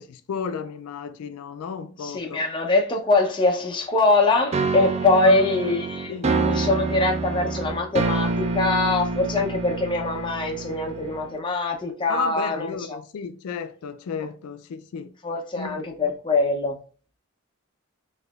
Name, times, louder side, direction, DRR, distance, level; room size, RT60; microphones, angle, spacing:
voice 1, 0.0-2.4 5.1-5.4 6.1-6.4 12.1-15.1 15.6-16.1, left 6 dB, 80° left, 0.3 m, -33 dB
voice 2, 2.0-13.0 15.2-16.7, left 2 dB, 20° left, 0.5 m, -23 dB
sound 1, 4.5-11.4, right 3 dB, 30° right, 0.3 m, -27 dB
4.2 x 2.8 x 2.3 m
head